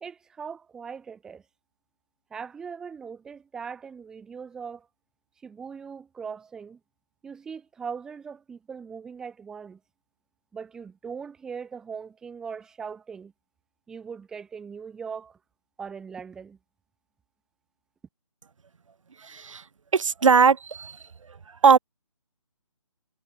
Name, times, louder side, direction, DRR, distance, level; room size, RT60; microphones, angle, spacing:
voice 1, 0.0-1.4 2.3-4.9 5.4-6.8 7.2-9.8 10.5-13.3 13.9-15.4 15.8-16.6, right 6 dB, 5° right, 0.6 m, -40 dB
voice 2, 19.2-19.6 19.9-21.0 21.6-21.8, right 5 dB, 60° right, 1.0 m, -19 dB
figure-of-eight pair, 150°, 18 cm